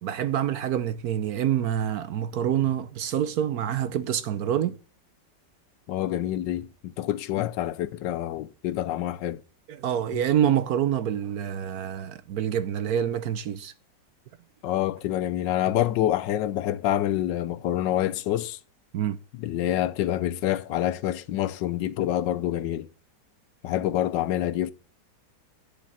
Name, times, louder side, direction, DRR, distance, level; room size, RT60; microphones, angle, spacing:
voice 1, 0.0-4.7 9.7-13.7 18.9-19.2, right 10 dB, 65° right, 1.0 m, -26 dB
voice 2, 5.9-9.4 14.6-18.6 19.4-22.9 23.6-24.7, left 12 dB, 80° left, 1.3 m, -27 dB
10.5 x 5.3 x 7.2 m
omnidirectional pair, 2.0 m